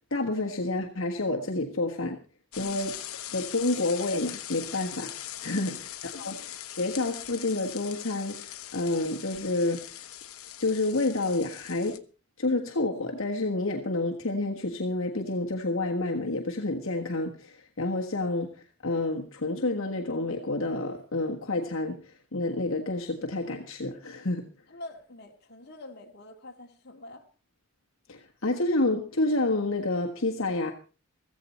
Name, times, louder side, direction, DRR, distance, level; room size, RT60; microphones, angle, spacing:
voice 1, 0.1-2.2 2.6-2.9 3.3-5.1 5.4-6.4 6.7-9.9 10.6-12.0 12.4-18.5 18.8-24.5 28.1-30.7, left 2 dB, 65° left, 1.5 m, -29 dB
sound 1, 2.5-12.0, left 12 dB, 80° left, 1.1 m, -41 dB
voice 2, 5.5-5.8 6.1-6.3 24.7-27.3, left 2 dB, 45° left, 2.2 m, -46 dB
15.5 x 15.0 x 4.3 m
head